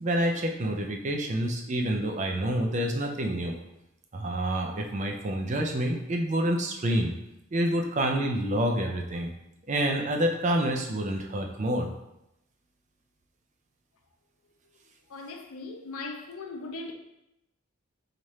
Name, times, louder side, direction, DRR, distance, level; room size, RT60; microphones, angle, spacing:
voice 1, 0.0-3.6 4.1-7.1 7.5-9.3 9.7-11.9, right 1 dB, 35° right, 0.3 m, -28 dB
voice 2, 15.1-16.9, left 3 dB, 85° left, 0.5 m, -39 dB
3.2 x 2.4 x 4.1 m
head